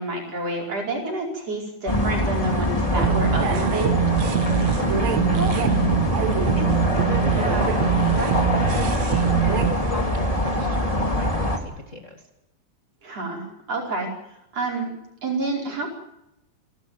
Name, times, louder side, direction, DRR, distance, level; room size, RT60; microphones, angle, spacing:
voice 1, 0.0-3.9 13.0-14.1 14.5-14.9 15.2-15.9, right 2 dB, 55° right, 0 dB, 5.9 m, -28 dB
sound 1, 1.9-11.6, left 1 dB, 10° left, 2.5 m, -24 dB
sound 2, 3.0-9.7, right 10 dB, 70° right, 2.3 m, -23 dB
voice 2, 4.8-5.6 6.6-12.2, left 1 dB, 30° left, 2 dB, 2.0 m, -35 dB
28.5 x 12.5 x 9.4 m, 0.86 s
omnidirectional pair, 3.3 m